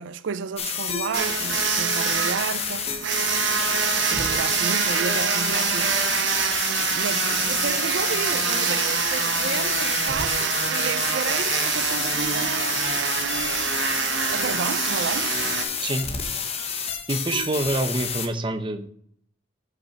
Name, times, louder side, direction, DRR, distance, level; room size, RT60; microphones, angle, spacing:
voice 1, 0.0-2.9 3.7-6.0 6.8-13.7 14.3-15.3, right 6 dB, 85° right, 0.4 m, -32 dB
sound 1, 0.6-18.3, left 6 dB, 35° left, 0.9 m, -29 dB
sound 2, 1.1-15.6, right 7 dB, 70° right, 0.9 m, -25 dB
voice 2, 17.1-18.9, right 2 dB, 25° right, 0.7 m, -26 dB
5.9 x 5.3 x 6.4 m
head